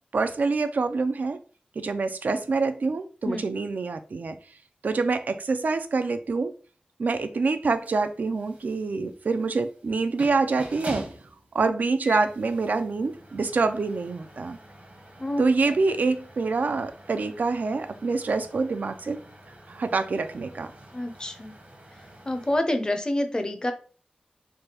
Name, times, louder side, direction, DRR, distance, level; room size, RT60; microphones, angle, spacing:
voice 1, 0.1-1.4 1.8-4.4 4.8-6.5 7.0-11.1 11.5-14.6 15.4-19.2 19.7-20.7, right 4 dB, 75° right, 0.3 m, -26 dB
sound 1, 7.7-22.6, right 1 dB, 55° right, 0.9 m, -45 dB
voice 2, 15.2-15.8 20.9-21.5 22.2-23.7, left 1 dB, 25° left, 0.5 m, -28 dB
3.3 x 2.2 x 2.9 m
wide cardioid pair, 60°, 3 cm